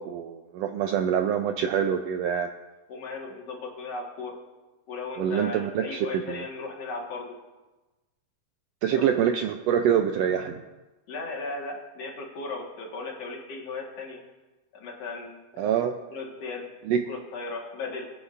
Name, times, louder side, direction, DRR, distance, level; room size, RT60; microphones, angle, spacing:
voice 1, 0.0-2.5 5.2-6.4 8.8-10.6 15.6-15.9 16.9-17.0, right 8 dB, 80° right, 6 dB, 1.5 m, -25 dB
voice 2, 2.9-4.4 4.9-7.4 8.9-9.1 11.1-14.2 14.7-15.6 16.1-16.7 17.1-18.1, left 3 dB, 60° left, -1 dB, 2.5 m, -36 dB
21.0 x 9.5 x 2.5 m, 1.2 s
omnidirectional pair, 3.3 m